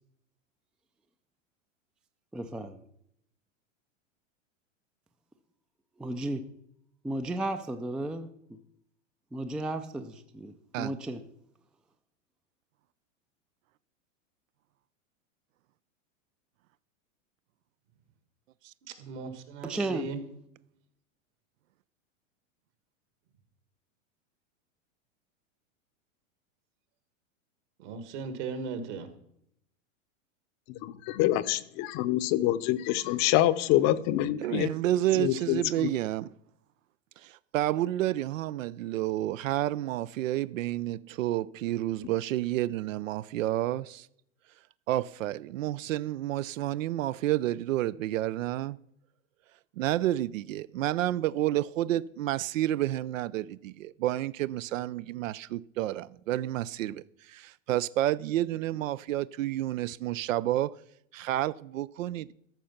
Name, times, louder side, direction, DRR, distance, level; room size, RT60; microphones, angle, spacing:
voice 1, 2.3-2.8 6.0-6.4 7.0-8.6 9.3-11.2 19.6-20.1, right 2 dB, ahead, 0.3 m, -34 dB
voice 2, 18.8-20.2 27.8-29.1, right 5 dB, 60° right, 2.0 m, -37 dB
voice 3, 30.8-34.7 35.2-35.9, left 14 dB, 45° left, 0.7 m, -26 dB
voice 4, 34.4-36.3 37.2-44.1 44.9-48.8 49.8-60.7 61.1-62.3, right 14 dB, 85° right, 0.5 m, -30 dB
13.5 x 5.4 x 5.8 m
hypercardioid pair, 115°, 38 cm